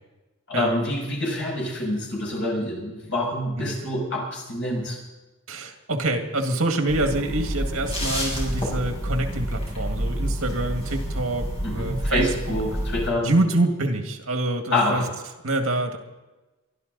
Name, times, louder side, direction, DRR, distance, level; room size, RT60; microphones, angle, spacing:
voice 1, 0.5-5.0 11.6-13.3 14.7-15.1, left 1 dB, 60° left, -3 dB, 6.7 m, -26 dB
voice 2, 5.5-12.6 13.2-15.0 15.4-16.0, right 2 dB, 75° right, 4 dB, 2.0 m, -26 dB
sound 1, 6.9-13.1, equal, 30° left, 6.6 m, -28 dB
23.5 x 12.0 x 4.0 m, 1.1 s
head